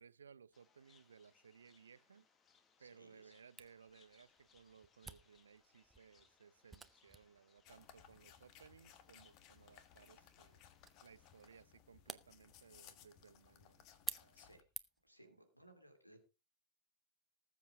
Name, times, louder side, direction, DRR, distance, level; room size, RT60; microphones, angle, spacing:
voice 1, 0.0-2.3 2.8-10.6 11.0-13.9 14.2-14.4 15.2-15.4, right 6 dB, 70° right, 0.6 m, -62 dB
sound 1, 0.5-11.6, left 6 dB, 25° left, 1.8 m, -73 dB
voice 2, 2.8-3.3 14.3-14.6 15.0-16.2, right 1 dB, 90° left, 2.6 m, -63 dB
Camera, 3.6-15.2, right 4 dB, 10° right, 0.8 m, -54 dB
sound 2, 7.6-14.6, left 9 dB, 40° left, 1.5 m, -63 dB
19.5 x 7.4 x 3.7 m
figure-of-eight pair, 90°, 0 cm